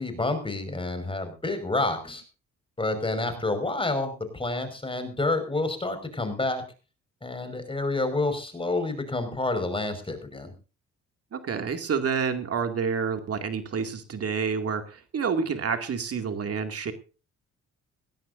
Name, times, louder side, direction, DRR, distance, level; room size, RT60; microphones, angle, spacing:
voice 1, 0.0-2.2 2.8-6.6 7.2-10.5, left 2 dB, 15° left, 8 dB, 5.3 m, -29 dB
voice 2, 11.3-16.9, right 6 dB, 50° right, 6 dB, 2.4 m, -28 dB
18.5 x 16.5 x 2.7 m, 0.34 s
cardioid pair, 90°, 30 cm